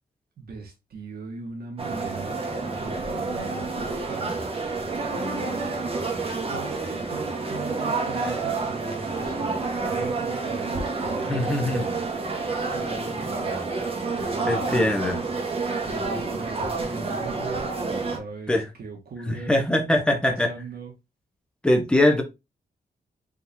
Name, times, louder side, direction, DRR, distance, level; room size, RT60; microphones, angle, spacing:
voice 1, 0.4-2.4 2.8-4.5 5.1-5.7 6.5-12.0 12.7-13.7 14.1-15.0 15.9-17.7 18.0-19.5 20.1-20.9, right 3 dB, 70° right, 1.5 m, -39 dB
sound 1, 1.8-18.2, right 3 dB, 35° right, 1.1 m, -29 dB
voice 2, 11.3-11.9 14.4-15.2 18.5-18.6 19.3-20.5 21.6-22.2, left 1 dB, 5° left, 0.9 m, -22 dB
4.2 x 3.8 x 2.6 m
wide cardioid pair, 160°, 16 cm